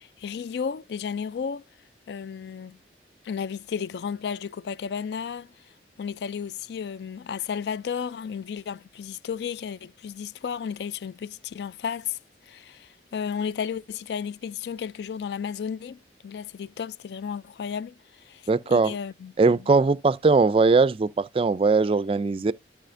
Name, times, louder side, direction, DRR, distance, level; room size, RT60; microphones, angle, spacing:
voice 1, 0.0-1.6 2.1-2.8 3.2-5.5 6.0-12.2 12.5-17.9 18.3-18.4 18.7-19.6, left 7 dB, 70° left, 0.3 m, -33 dB
voice 2, 18.5-19.0 19.4-22.5, right 4 dB, 30° right, 0.3 m, -20 dB
12.5 x 4.9 x 2.5 m
head